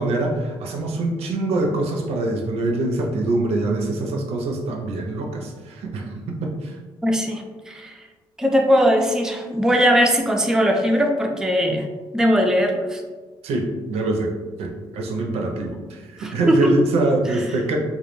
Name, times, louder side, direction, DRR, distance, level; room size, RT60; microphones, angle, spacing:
voice 1, 0.0-6.8 13.4-14.3 14.6-17.8, right 2 dB, 75° right, 1 dB, 0.4 m, -24 dB
voice 2, 7.0-8.0 8.4-11.9 12.1-13.0 16.2-16.9 17.3-17.4, equal, 5° right, 2 dB, 0.3 m, -20 dB
2.2 x 2.1 x 3.0 m, 1.3 s
supercardioid pair, 70°, 11 cm